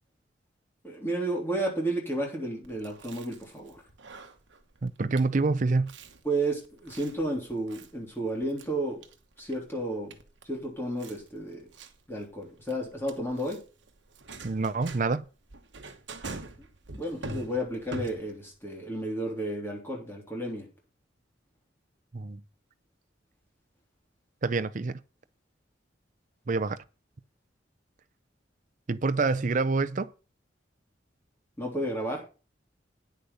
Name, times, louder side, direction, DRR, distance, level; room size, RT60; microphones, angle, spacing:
voice 1, 0.8-3.8 6.2-9.0 9.4-10.1 10.4-11.7 12.1-13.6 16.9-20.7 31.6-32.2, right 1 dB, 15° left, 3.3 m, -32 dB
Chewing mastication, 2.6-18.6, right 2 dB, 70° right, 1.2 m, -45 dB
voice 2, 4.8-5.9 14.4-15.3 22.1-22.4 24.4-25.0 26.5-26.8 28.9-30.1, right 3 dB, 40° right, 0.5 m, -27 dB
9.5 x 6.6 x 5.6 m
head